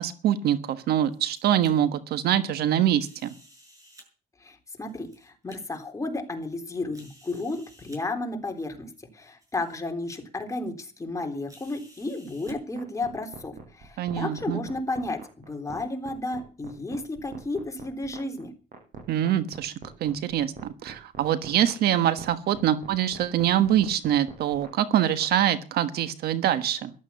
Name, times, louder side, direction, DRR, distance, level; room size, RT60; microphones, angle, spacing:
voice 1, 0.0-3.3 14.0-14.6 19.1-19.7 20.0-26.9, right 11 dB, 70° right, 12 dB, 1.3 m, -24 dB
sound 1, 1.0-1.7 3.0-4.1 4.8-5.6 6.2-6.3 6.9-8.0 8.9-9.0 9.4-9.8 10.1-10.2 11.5-12.6, equal, 20° right, 7.2 m, -53 dB
voice 2, 4.4-18.5, left 2 dB, 20° left, 4 dB, 3.6 m, -33 dB
sound 2, 12.5-25.3, right 5 dB, 55° right, 7.5 m, -44 dB
14.5 x 12.0 x 6.9 m, 0.39 s
cardioid pair, 110°, 17 cm